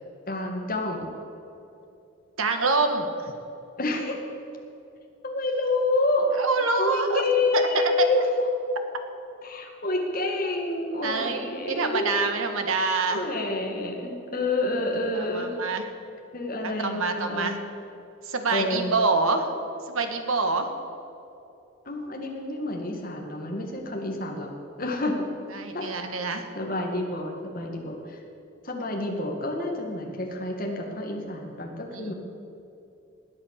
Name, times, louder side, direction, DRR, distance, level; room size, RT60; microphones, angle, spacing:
voice 1, 0.3-1.1 3.8-4.2 5.2-6.3 6.8-8.3 9.4-12.2 13.1-15.5 16.3-17.6 18.5-18.9 21.9-24.5 24.8-25.3 25.7-25.9 26.3-28.2 28.6-32.1, left 2 dB, 40° left, 1 dB, 2.1 m, -28 dB
voice 2, 2.4-3.3 6.4-7.2 7.5-7.9 11.0-13.2 15.2-15.8 16.6-17.6 18.3-19.5 19.9-20.7 25.5-26.5 31.9-32.1, right 3 dB, 80° right, 6 dB, 1.6 m, -26 dB
20.0 x 8.6 x 6.6 m, 2.8 s
head